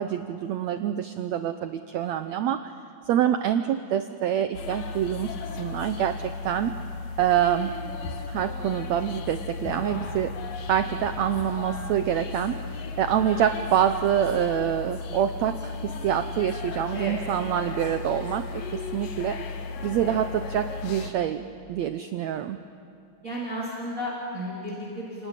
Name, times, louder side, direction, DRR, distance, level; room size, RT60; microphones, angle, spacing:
voice 1, 0.0-2.7 3.1-6.7 7.2-7.7 8.3-10.4 10.7-19.6 19.8-22.6, right 10 dB, 85° right, 9 dB, 1.6 m, -26 dB
sound 1, 4.5-21.1, left 4 dB, 70° left, 3.1 m, -35 dB
voice 2, 16.9-17.4 20.0-20.2 23.2-25.3, equal, 25° right, -5 dB, 3.6 m, -33 dB
29.5 x 19.0 x 9.9 m, 2.7 s
omnidirectional pair, 4.0 m